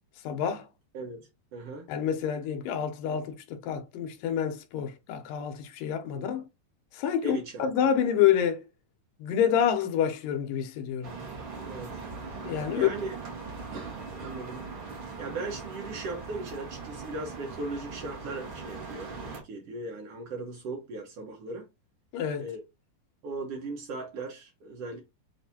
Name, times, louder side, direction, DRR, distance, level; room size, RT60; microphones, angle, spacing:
voice 1, 0.2-0.7 1.9-6.4 6.9-8.6 9.2-11.2 12.4-12.9 22.1-22.5, left 9 dB, 75° left, 2.3 m, -28 dB
voice 2, 0.9-1.9 6.1-6.3 7.2-7.7 11.6-12.0 12.7-13.1 13.7-14.6 15.2-21.7 22.4-22.6 23.2-25.0, right 2 dB, 85° right, 1.3 m, -38 dB
sound 1, 11.0-19.4, right 4 dB, 55° right, 1.5 m, -40 dB
6.6 x 2.6 x 2.8 m
omnidirectional pair, 4.2 m